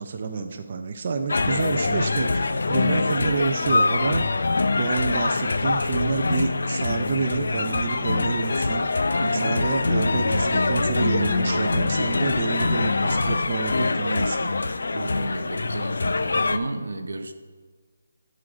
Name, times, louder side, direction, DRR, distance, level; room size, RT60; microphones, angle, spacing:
voice 1, 0.0-4.2 4.8-8.9 9.3-14.5, right 4 dB, 30° right, 6 dB, 0.3 m, -28 dB
sound 1, 1.3-16.6, left 3 dB, 65° left, 0.4 m, -24 dB
voice 2, 9.2-9.5 14.9-17.3, right 2 dB, 85° right, 7 dB, 0.7 m, -32 dB
9.3 x 3.8 x 4.8 m, 1.5 s
hypercardioid pair, 180°, 0 cm